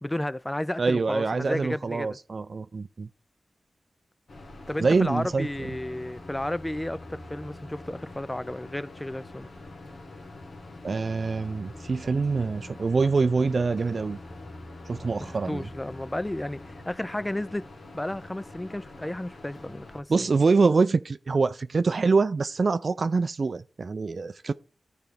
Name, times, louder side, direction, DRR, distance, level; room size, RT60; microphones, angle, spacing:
voice 1, 0.0-2.2 4.7-9.5 15.2-20.3, left 1 dB, 15° left, 0.3 m, -33 dB
voice 2, 0.8-3.1 4.8-5.5 10.8-14.2 14.9-15.7 20.1-24.5, right 4 dB, 60° right, 0.4 m, -25 dB
sound 1, 4.3-20.0, left 2 dB, 75° left, 1.6 m, -46 dB
sound 2, 5.3-16.9 17.2-17.3, left 1 dB, 50° left, 0.8 m, -47 dB
12.0 x 4.4 x 3.4 m
cardioid pair, 55°, 0 cm